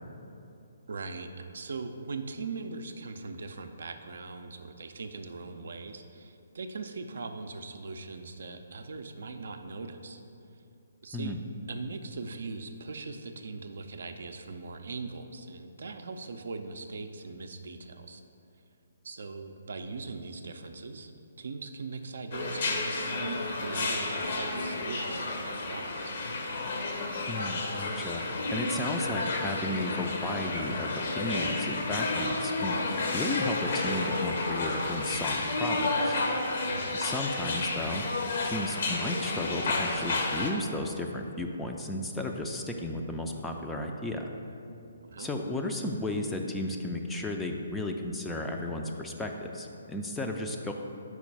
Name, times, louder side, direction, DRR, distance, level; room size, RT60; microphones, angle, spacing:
voice 1, 0.9-10.2 11.0-11.4 11.7-18.2 19.0-21.1 21.4-26.1 36.7-36.9 45.0-45.3, right 3 dB, 60° right, 6 dB, 0.4 m, -40 dB
sound 1, 22.3-40.5, left 2 dB, 50° left, 0.7 m, -31 dB
voice 2, 27.3-28.2 28.5-32.8 33.1-36.2 36.9-38.0 38.4-44.3 45.2-50.7, left 1 dB, 5° left, 2 dB, 0.4 m, -34 dB
4.8 x 4.4 x 5.4 m, 2.7 s
figure-of-eight pair, 135°, 0 cm